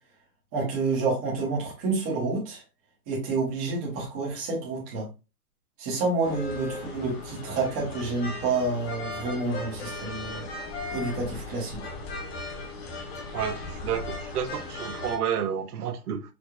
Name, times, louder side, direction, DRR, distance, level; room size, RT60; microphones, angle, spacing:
voice 1, 0.5-2.6 3.1-5.1 5.8-10.4 10.9-11.8, right 3 dB, 10° right, 0.5 m, -29 dB
sound 1, 6.2-15.2, left 2 dB, 45° left, 1.0 m, -37 dB
voice 2, 13.3-16.2, right 8 dB, 90° right, 0.8 m, -30 dB
4.6 x 2.3 x 2.3 m
hypercardioid pair, 160°, 44 cm